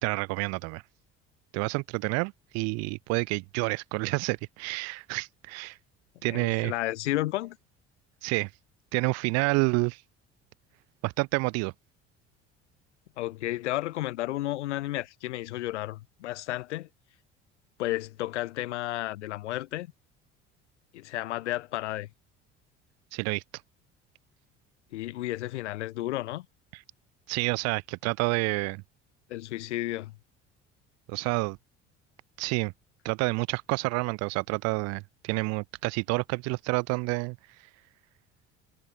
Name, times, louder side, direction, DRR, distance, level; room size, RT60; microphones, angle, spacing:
voice 1, 0.0-0.8 1.5-5.8 6.2-6.7 8.2-8.5 8.9-10.0 11.0-11.7 23.1-23.4 26.7-26.8 27.3-28.8 31.1-31.6 32.4-32.7 33.0-37.4, right 27 dB, 50° right, 0.5 m, -29 dB
voice 2, 6.3-7.6 13.2-16.9 17.8-19.9 20.9-22.1 24.9-26.5 29.3-30.1, left 16 dB, 75° left, 0.6 m, -32 dB
figure-of-eight pair, 60°, 35 cm